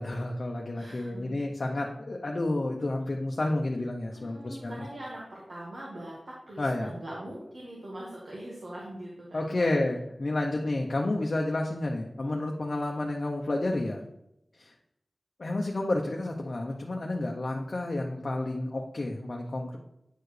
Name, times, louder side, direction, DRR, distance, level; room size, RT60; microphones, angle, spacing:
voice 1, 0.0-4.7 6.6-6.9 9.3-14.0 14.6-14.7 15.4-19.8, left 2 dB, 60° left, 0 dB, 0.7 m, -30 dB
voice 2, 0.7-1.3 4.1-9.7, right 1 dB, 70° right, -4 dB, 1.5 m, -42 dB
9.0 x 4.6 x 3.3 m, 0.83 s
cardioid pair, 45°, 0 cm